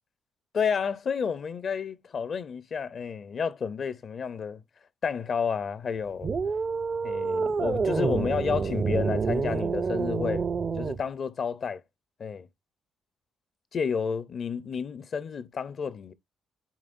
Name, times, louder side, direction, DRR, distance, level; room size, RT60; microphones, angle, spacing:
voice 1, 0.5-4.6 5.0-6.3 7.0-10.4 10.8-11.8 12.2-12.5 13.7-16.1, left 6 dB, 50° left, 0.6 m, -30 dB
sound 1, 6.2-11.0, right 5 dB, 40° right, 0.5 m, -28 dB
11.0 x 3.9 x 2.5 m
cardioid pair, 90°, 0 cm